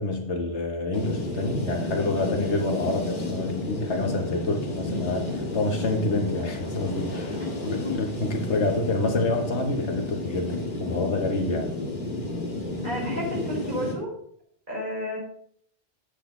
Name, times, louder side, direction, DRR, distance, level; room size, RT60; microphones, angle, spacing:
voice 1, 0.0-11.7, left 2 dB, 80° left, 3 dB, 1.7 m, -28 dB
sound 1, 0.9-13.9, left 2 dB, 50° left, 1.9 m, -32 dB
voice 2, 7.4-7.9 12.8-14.1 14.7-15.2, left 1 dB, 45° right, -5 dB, 4.9 m, -31 dB
8.8 x 8.1 x 3.8 m, 0.65 s
omnidirectional pair, 1.1 m